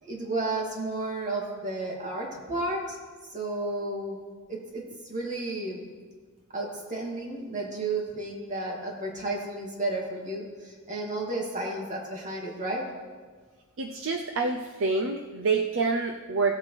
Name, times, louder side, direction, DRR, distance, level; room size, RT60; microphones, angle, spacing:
voice 1, 0.0-3.0 3.3-4.2 4.5-4.8 5.1-5.9 6.5-12.8, right 2 dB, 35° right, -2 dB, 2.5 m, -32 dB
voice 2, 13.8-16.6, right 4 dB, 60° right, 4 dB, 0.6 m, -27 dB
17.0 x 8.3 x 3.3 m, 1.5 s
head